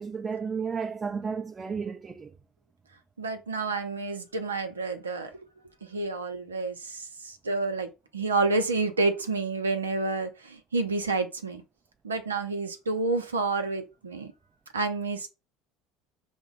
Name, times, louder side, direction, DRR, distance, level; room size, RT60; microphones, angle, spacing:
voice 1, 0.0-2.3, right 5 dB, 25° right, 0.5 m, -33 dB
voice 2, 3.2-5.3 5.8-11.6 12.0-14.3 14.7-15.3, right 3 dB, 90° right, 0.7 m, -29 dB
6.1 x 2.1 x 3.6 m
hypercardioid pair, 70°, 0 cm